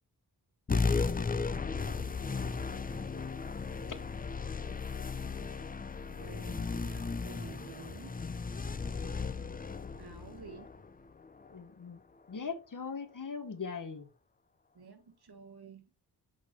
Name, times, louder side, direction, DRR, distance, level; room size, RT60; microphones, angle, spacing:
sound 1, 0.7-11.5, left 4 dB, 20° left, 0.5 m, -35 dB
voice 1, 1.2-4.0 6.1-8.2 10.0-10.7 14.7-15.8, right 5 dB, 65° right, 1.5 m, -52 dB
voice 2, 11.5-12.0 12.3-14.1, left 5 dB, 50° left, 1.1 m, -40 dB
8.2 x 4.1 x 3.1 m
cardioid pair, 65°, 42 cm